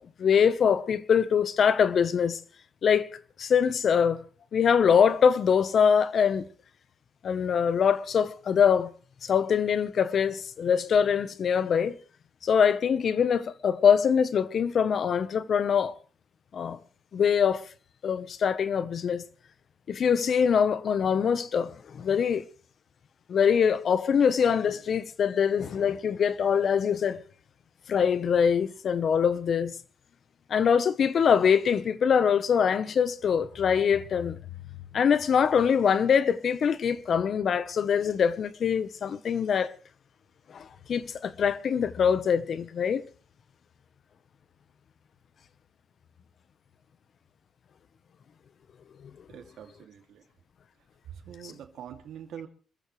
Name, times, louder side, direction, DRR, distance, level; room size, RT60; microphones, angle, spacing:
voice 1, 0.2-2.4 2.8-3.1 3.4-4.2 4.5-6.4 7.2-8.9 9.2-11.9 12.4-15.9 16.5-16.8 17.1-17.6 18.0-19.2 19.9-22.4 23.3-27.2 27.9-29.7 30.5-34.4 34.9-39.7 40.5-43.0 49.0-49.1, left 7 dB, 50° left, 1.0 m, -23 dB
voice 2, 49.3-50.2 51.1-52.5, right 9 dB, 70° right, 2.6 m, -44 dB
27.0 x 14.5 x 3.3 m
cardioid pair, 120°, 0 cm